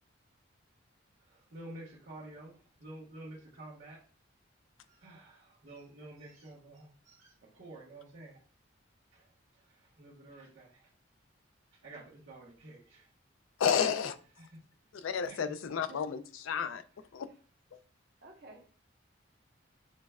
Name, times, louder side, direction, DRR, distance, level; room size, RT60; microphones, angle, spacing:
voice 1, 1.3-4.0 4.9-8.4 9.1-9.3 9.6-10.9 11.7-13.1 14.4-14.6 15.2-15.5, right 1 dB, 75° right, 1.4 m, -50 dB
voice 2, 13.6-14.2 15.0-16.8 17.1-17.3, left 7 dB, 85° left, 0.4 m, -31 dB
voice 3, 18.2-18.7, right 2 dB, 50° right, 0.9 m, -53 dB
6.2 x 2.3 x 2.2 m
head